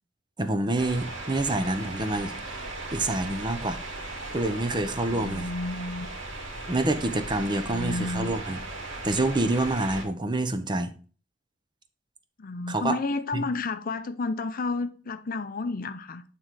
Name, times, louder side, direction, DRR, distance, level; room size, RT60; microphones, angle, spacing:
voice 1, 0.4-2.3 2.9-3.8 4.3-5.5 6.7-8.6 9.0-10.9 12.7-13.0 13.3-13.4, right 2 dB, 25° right, 0.7 m, -27 dB
sound 1, 0.8-10.0, right 2 dB, 75° right, 2.2 m, -37 dB
voice 2, 5.1-6.1 7.7-8.3 12.4-16.2, left 3 dB, 50° left, 0.5 m, -31 dB
8.7 x 3.7 x 4.6 m
head